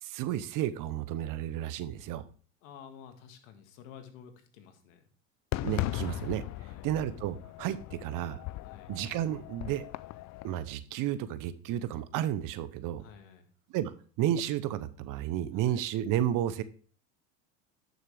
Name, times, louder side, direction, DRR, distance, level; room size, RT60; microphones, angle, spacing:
voice 1, 0.0-2.2 5.6-8.4 8.9-9.9 10.4-13.0 13.7-13.9 14.2-16.6, right 11 dB, 55° right, 14 dB, 0.8 m, -32 dB
voice 2, 2.6-5.1 6.6-6.8 8.6-9.0 13.0-13.5 15.7-15.8, left 8 dB, 75° left, 6 dB, 2.0 m, -51 dB
Fireworks, 5.5-10.6, left 16 dB, 45° left, 0.5 m, -38 dB
11.0 x 6.5 x 3.4 m, 0.42 s
supercardioid pair, 90°, 39 cm